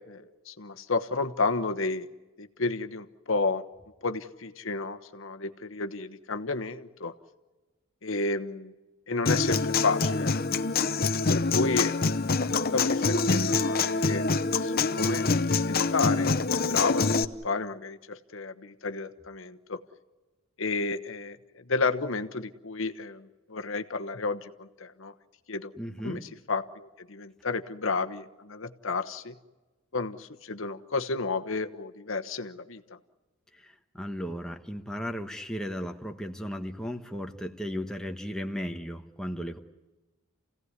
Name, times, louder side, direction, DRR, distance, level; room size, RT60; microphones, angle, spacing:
voice 1, 0.1-2.1 2.4-3.6 4.0-7.1 8.0-8.7 9.1-10.3 11.3-12.4 12.7-14.3 14.6-15.3 15.5-16.3 16.7-19.8 20.6-21.4 21.7-25.1 25.5-25.7 26.0-29.3 29.9-33.0, left 3 dB, 65° left, 8 dB, 1.1 m, -31 dB
Human voice / Acoustic guitar, 9.3-17.2, left 4 dB, 45° left, 0.8 m, -25 dB
voice 2, 25.8-26.3 33.6-39.6, equal, 5° left, 3 dB, 1.2 m, -35 dB
29.0 x 17.0 x 9.7 m, 1.2 s
head